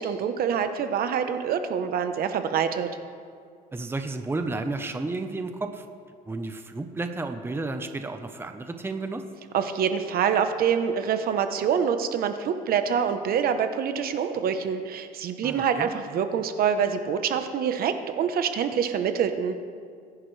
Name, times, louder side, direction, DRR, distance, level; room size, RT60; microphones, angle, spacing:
voice 1, 0.0-2.9 9.5-19.6, right 7 dB, 60° right, 8 dB, 1.0 m, -26 dB
voice 2, 3.7-5.8 6.3-9.2 15.4-15.9, right 3 dB, 15° right, 7 dB, 0.8 m, -32 dB
23.0 x 11.0 x 3.3 m, 2.2 s
cardioid pair, 110°, 17 cm